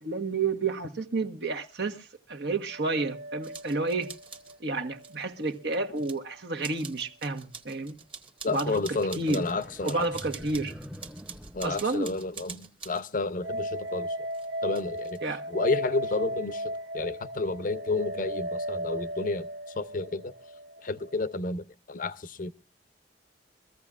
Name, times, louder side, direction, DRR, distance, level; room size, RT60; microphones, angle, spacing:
voice 1, 0.0-4.1 4.6-8.0 8.5-8.7 9.2-9.4 9.8-10.7 11.6-12.1 15.2-15.4, right 3 dB, 70° right, 1.2 m, -30 dB
sound 1, 2.7-5.9 6.1-6.2 13.4-21.4, equal, 90° right, 0.7 m, -36 dB
sound 2, 3.4-4.6 5.0-6.2 6.6-13.1 14.3-15.2, right 5 dB, 30° right, 1.3 m, -46 dB
voice 2, 8.4-10.1 11.5-14.2 14.6-15.2 15.5-19.5 19.7-20.3 20.8-22.5, left 3 dB, 50° left, 0.7 m, -31 dB
sound 3, 9.2-12.7, equal, 5° right, 0.6 m, -46 dB
23.5 x 14.5 x 2.4 m
head